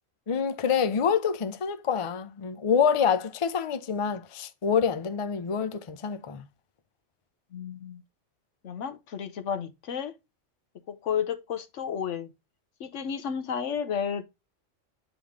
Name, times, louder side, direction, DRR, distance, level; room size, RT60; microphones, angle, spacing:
voice 1, 0.3-6.4, left 7 dB, 40° left, 0.5 m, -26 dB
voice 2, 7.5-8.0 8.6-10.1 10.9-12.3 12.8-14.2, left 7 dB, 80° left, 1.2 m, -32 dB
8.9 x 3.6 x 3.5 m
omnidirectional pair, 1.3 m